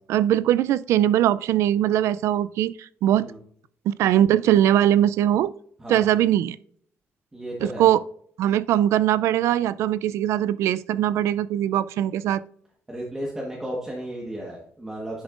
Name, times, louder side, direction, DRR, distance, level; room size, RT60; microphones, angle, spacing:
voice 1, 0.1-3.3 3.9-5.5 5.9-6.6 7.8-8.0 8.4-12.4, right 11 dB, 80° right, 0.4 m, -21 dB
voice 2, 7.3-7.9 12.9-15.2, right 1 dB, 10° right, 1.3 m, -34 dB
10.5 x 7.0 x 2.5 m
cardioid pair, 180°, 5 cm